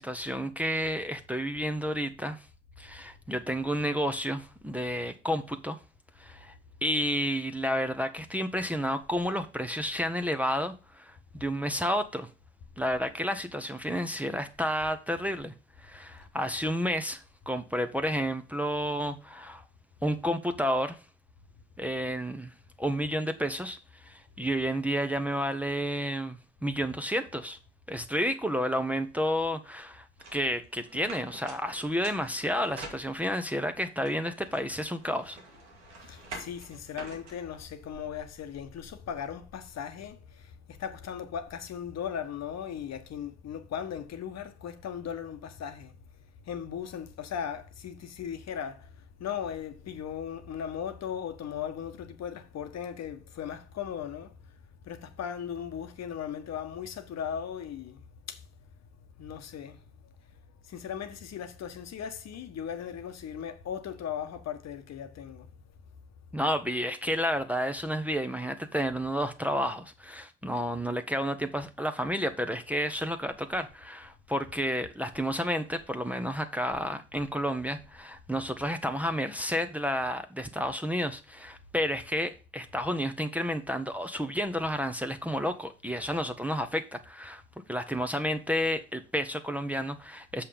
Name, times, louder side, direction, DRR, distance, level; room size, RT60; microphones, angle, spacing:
voice 1, 0.0-2.5 2.8-5.8 6.2-6.5 6.8-12.3 12.8-19.6 20.0-21.0 21.8-22.5 22.8-27.6 27.9-30.0 30.3-35.4 66.3-87.4 87.7-90.4, equal, 5° right, 0.9 m, -31 dB
sound 1, 30.2-33.5 34.1-38.0, right 2 dB, 90° right, 1.8 m, -47 dB
voice 2, 36.0-45.9 46.4-48.9 49.2-54.3 54.8-58.4 59.2-59.8 60.6-65.5, left 8 dB, 50° left, 1.2 m, -37 dB
7.0 x 5.7 x 5.1 m
hypercardioid pair, 55°, 34 cm